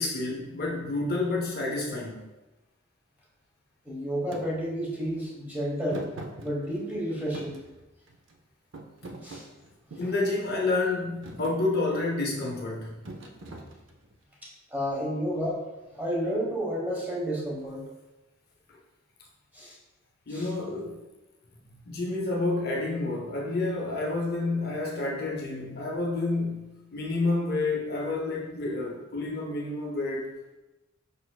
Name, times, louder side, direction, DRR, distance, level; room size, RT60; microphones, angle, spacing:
voice 1, 0.0-2.3 10.0-12.9 18.7-18.8 20.3-21.0 21.9-30.3, left 2 dB, 45° left, -1 dB, 0.6 m, -29 dB
voice 2, 3.8-6.0 6.4-7.6 9.2-9.4 9.9-10.0 14.4-15.6 15.9-17.8 19.5-19.8 20.3-20.5, equal, 10° right, -5 dB, 1.1 m, -31 dB
Thump thud, 4.3-4.5 5.9-7.0 7.3-8.3 8.7-10.2 10.7-11.0 11.2-11.6 13.0-14.1, right 2 dB, 60° right, 0.5 m, -42 dB
5.2 x 4.2 x 2.3 m, 1.0 s
head